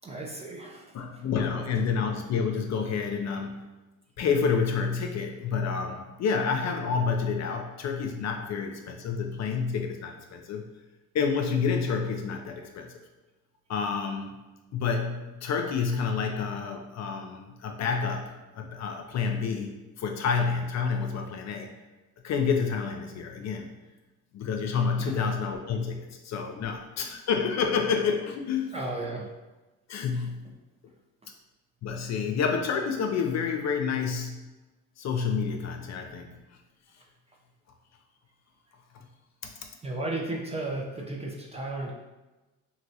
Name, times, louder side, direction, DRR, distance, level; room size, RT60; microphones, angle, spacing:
voice 1, 0.0-0.9 25.0-25.2 26.6-26.7 28.7-29.3 39.8-41.9, right 2 dB, 15° right, -1 dB, 0.5 m, -34 dB
voice 2, 0.9-3.7 4.2-10.6 11.1-12.9 13.7-14.4 14.7-21.7 22.2-23.7 24.3-28.8 29.9-30.4 31.8-34.4 35.0-36.3 38.9-39.0 39.4-39.5, left 5 dB, 45° left, 3 dB, 0.5 m, -29 dB
3.0 x 2.6 x 2.7 m, 1.1 s
supercardioid pair, 75°, 39 cm